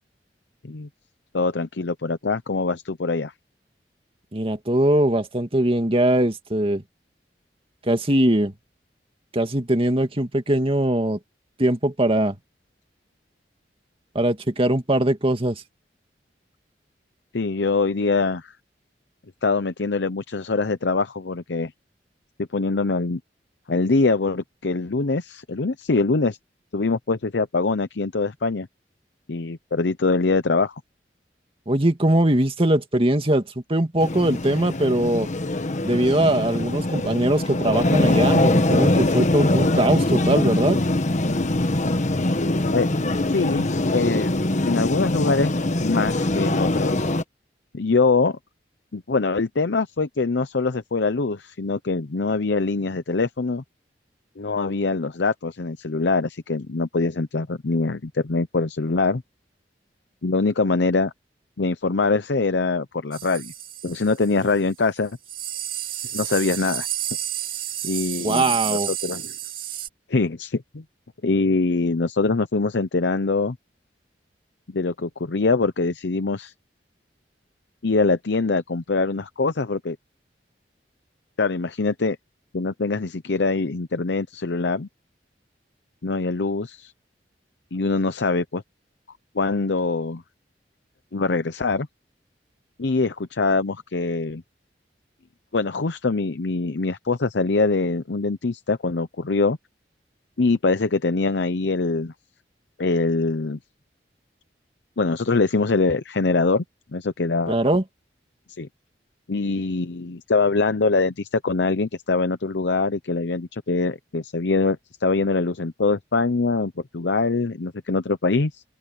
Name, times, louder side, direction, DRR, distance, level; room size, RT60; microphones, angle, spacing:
voice 1, 1.3-3.3 17.3-18.5 19.4-21.7 22.4-23.2 23.7-26.4 26.7-28.7 29.3-30.7 42.7-42.9 43.3-44.3 44.7-45.5 45.8-47.1 47.7-48.4 48.9-53.6 54.4-59.2 60.2-61.1 61.6-63.5 63.8-65.2 66.1-66.9 67.8-69.3 70.1-70.8 71.2-73.6 74.7-76.5 77.8-80.0 81.4-82.2 82.5-84.9 86.0-86.9 87.7-88.6 89.3-90.2 91.1-91.9 92.8-94.4 95.5-99.6 100.4-102.1 102.8-103.6 105.0-106.6 106.9-107.6 108.6-108.7 109.3-118.6, left 3 dB, 80° left, 0.7 m, -23 dB
voice 2, 4.3-6.8 7.8-8.5 9.3-11.2 11.6-12.4 14.1-15.6 31.7-33.4 33.7-35.3 35.8-40.8 68.2-68.9 107.5-107.8, right 1 dB, 30° right, 2.2 m, -21 dB
sound 1, 34.0-47.2, left 1 dB, 45° left, 1.3 m, -22 dB
sound 2, 63.1-64.6 65.0-65.1 65.2-69.9, right 12 dB, 55° right, 2.3 m, -31 dB
open air
head